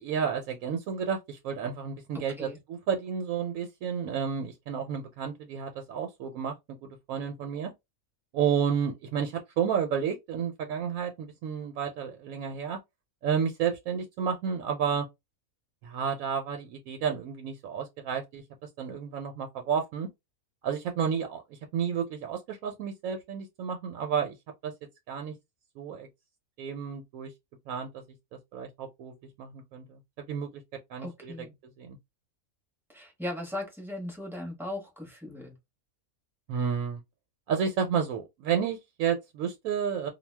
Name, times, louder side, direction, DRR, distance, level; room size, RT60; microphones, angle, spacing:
voice 1, 0.0-7.7 8.3-12.8 13.2-15.1 15.8-18.4 18.8-20.1 20.6-24.4 24.6-24.7 25.1-25.3 25.8-26.1 26.6-27.3 27.7-28.0 28.5-30.0 30.3-30.5 30.9-31.3 31.8-32.0 36.5-37.0 37.5-40.1, right 7 dB, 75° right, 1.0 m, -31 dB
voice 2, 2.1-2.6 31.0-31.6 32.9-35.5, left 1 dB, ahead, 0.7 m, -38 dB
2.3 x 2.2 x 3.2 m
omnidirectional pair, 1.5 m